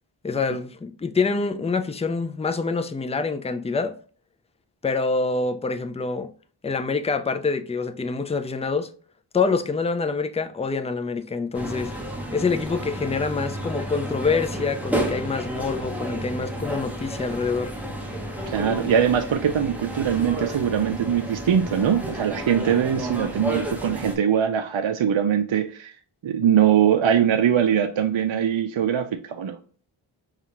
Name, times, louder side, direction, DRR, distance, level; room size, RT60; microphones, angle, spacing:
voice 1, 0.2-4.0 4.8-6.3 6.6-8.9 9.3-11.9 12.3-17.7, left 4 dB, 15° left, 0.4 m, -26 dB
sound 1, 11.5-24.2, right 1 dB, 5° right, 1.1 m, -31 dB
voice 2, 18.5-25.9 26.2-29.6, right 8 dB, 65° right, 0.5 m, -22 dB
5.6 x 2.4 x 2.9 m
wide cardioid pair, 45°, 49 cm